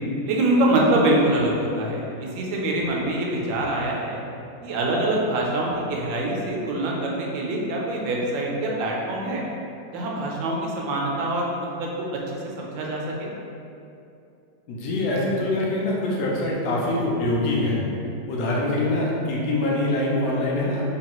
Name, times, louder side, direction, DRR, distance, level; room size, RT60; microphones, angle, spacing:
voice 1, 0.3-4.2 4.6-9.4 9.9-12.2 12.6-13.3, right 1 dB, 80° right, -2 dB, 1.3 m, -24 dB
voice 2, 14.7-17.8 18.3-21.0, left 1 dB, 70° left, -4 dB, 0.8 m, -24 dB
3.4 x 2.3 x 2.9 m, 2.7 s
omnidirectional pair, 2.0 m